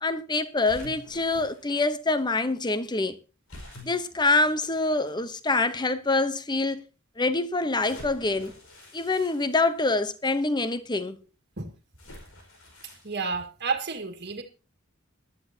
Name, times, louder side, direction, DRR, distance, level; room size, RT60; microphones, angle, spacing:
voice 1, 0.0-3.2 3.8-6.8 7.2-8.5 8.9-11.2, left 3 dB, 20° left, 0.9 m, -25 dB
sound 1, 0.7-1.9 3.5-5.1 5.9-6.0 7.8-10.1 12.0-13.1, left 1 dB, 90° left, 5.1 m, -47 dB
voice 2, 13.0-14.4, right 4 dB, 55° right, 1.8 m, -31 dB
18.5 x 12.0 x 2.8 m
head